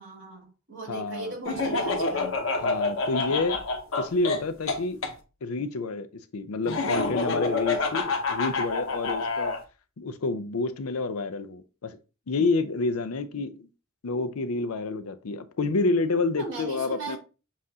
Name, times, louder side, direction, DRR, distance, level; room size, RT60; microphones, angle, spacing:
voice 1, 0.0-2.3 16.4-17.2, right 3 dB, 60° right, 2.6 m, -38 dB
voice 2, 0.9-1.3 2.6-3.6 4.0-5.0 5.4-9.6 10.0-12.0 12.3-13.7 14.0-17.2, left 3 dB, 90° left, 0.6 m, -29 dB
Laughter, 1.5-5.1 6.7-9.6, left 3 dB, 70° left, 0.9 m, -27 dB
7.3 x 2.5 x 2.8 m
head